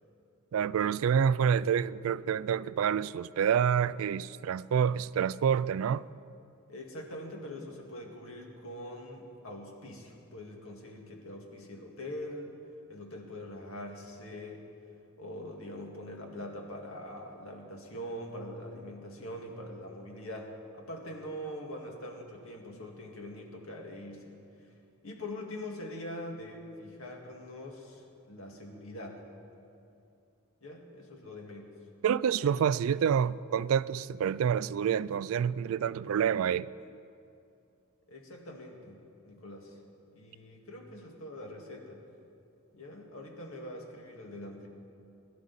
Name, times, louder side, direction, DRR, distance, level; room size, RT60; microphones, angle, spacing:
voice 1, 0.5-6.0 32.0-36.7, right 8 dB, 65° right, 0.3 m, -28 dB
voice 2, 6.7-12.6 12.9-14.6 15.2-24.4 25.0-29.2 30.6-31.7 38.1-39.8 40.1-42.0 42.7-44.7, left 1 dB, 70° left, 2.0 m, -43 dB
21.5 x 11.5 x 4.1 m
head